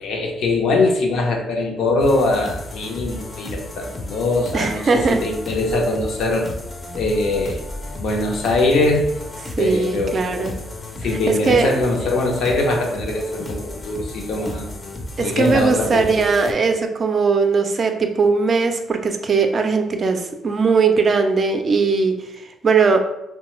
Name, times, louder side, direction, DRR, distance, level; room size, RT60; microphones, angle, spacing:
voice 1, 0.0-6.5 6.9-7.6 8.0-9.2 9.6-10.5 11.0-14.7 15.2-16.2, left 2 dB, 75° left, 1 dB, 0.6 m, -22 dB
sound 1, 2.0-16.5, left 1 dB, 30° left, 0.5 m, -33 dB
voice 2, 4.5-5.2 9.6-10.5 11.1-11.8 15.2-23.0, right 4 dB, 45° right, 6 dB, 0.4 m, -19 dB
3.0 x 2.2 x 3.0 m, 0.87 s
cardioid pair, 90°, 0 cm